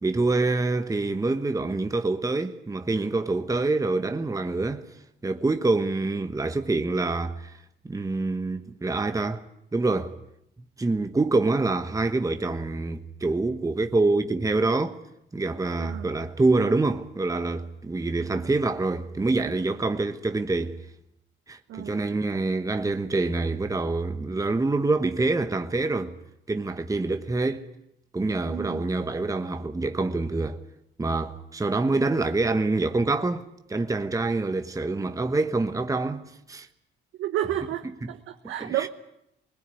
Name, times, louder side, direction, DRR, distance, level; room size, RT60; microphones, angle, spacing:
voice 1, 0.0-4.8 5.2-7.5 7.8-9.4 9.7-10.2 10.8-15.0 15.3-20.8 21.5-26.1 26.5-27.7 28.1-30.6 31.0-36.2 36.5-36.7 38.6-38.9, right 3 dB, 15° right, 1.2 m, -26 dB
voice 2, 15.8-16.1 21.7-22.0 28.4-28.8 37.2-38.9, right 12 dB, 85° right, 1.1 m, -31 dB
20.5 x 20.0 x 9.8 m
cardioid pair, 90°, 20 cm